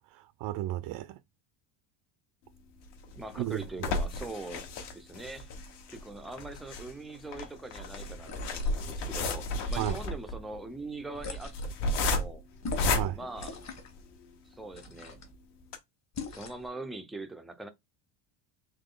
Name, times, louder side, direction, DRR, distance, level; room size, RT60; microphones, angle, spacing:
voice 1, 0.1-1.2 3.4-3.9 9.8-10.0 12.9-13.2, right 14 dB, 55° right, 0.5 m, -34 dB
sound 1, 2.8-14.2 14.7-14.8 15.1-15.2 15.6-15.8, left 2 dB, 55° left, 1.3 m, -34 dB
voice 2, 3.1-4.6 4.9-5.5 5.9-11.5 11.9-12.4 13.1-13.5 14.5-15.2 16.3-17.7, right 2 dB, ahead, 0.4 m, -42 dB
sound 2, 8.2-8.9 9.6-10.3 11.1-11.8 12.6-13.1 13.4-13.9 14.7-15.3 16.1-16.7, left 2 dB, 30° left, 1.4 m, -38 dB
3.9 x 3.1 x 3.7 m
cardioid pair, 135°, 49 cm